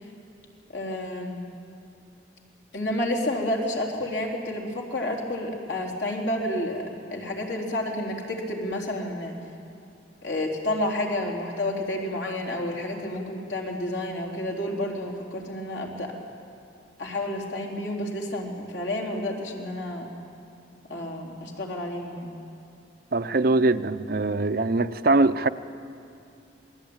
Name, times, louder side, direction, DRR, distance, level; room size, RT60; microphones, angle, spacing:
voice 1, 0.7-1.5 2.7-6.8 7.1-9.3 10.2-16.1 17.0-20.1 20.9-22.3, left 1 dB, 70° left, 4.0 m, -30 dB
voice 2, 23.1-25.5, right 2 dB, 55° right, 0.7 m, -22 dB
27.0 x 20.5 x 8.9 m
head